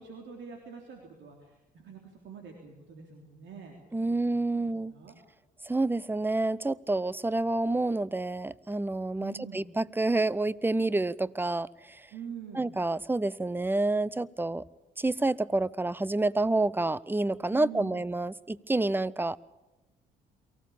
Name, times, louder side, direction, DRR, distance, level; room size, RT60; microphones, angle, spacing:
voice 1, 0.0-5.2 9.2-9.7 12.1-12.7 17.5-18.0, right 7 dB, 65° right, 2 dB, 3.4 m, -46 dB
voice 2, 3.9-4.9 5.6-12.1 12.5-14.6 15.0-19.4, right 2 dB, 10° right, 21 dB, 0.8 m, -28 dB
23.5 x 16.0 x 8.7 m, 1.0 s
hypercardioid pair, 55°, 21 cm